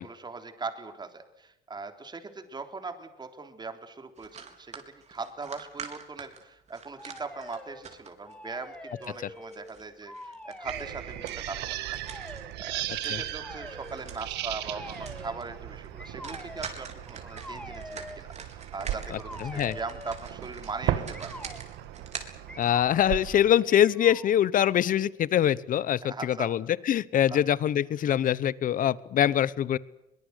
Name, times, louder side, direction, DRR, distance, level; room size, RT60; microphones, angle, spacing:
voice 1, 0.0-12.0 12.6-21.3 26.0-26.5 27.3-27.4, right 4 dB, 25° right, 7 dB, 3.6 m, -40 dB
sound 1, 4.2-8.3 8.7-13.4 13.7-14.3 14.6-14.7 14.9-15.4 15.7-15.9 16.2-23.0, right 6 dB, 40° right, 4.2 m, -45 dB
sound 2, 7.0-7.8 8.2-9.7 10.0-11.3 12.0-12.5 13.4-14.0 14.7-15.5 16.0-16.7 17.3-18.2 19.0-20.2 21.1-21.6 22.5-23.4 23.7-24.4, left 1 dB, 5° left, 2.3 m, -45 dB
sound 3, 10.6-23.5, right 13 dB, 85° right, 1.8 m, -37 dB
voice 2, 19.1-19.8 22.6-29.8, left 10 dB, 55° left, 20 dB, 1.0 m, -24 dB
23.0 x 21.0 x 8.3 m, 0.87 s
cardioid pair, 110°, 17 cm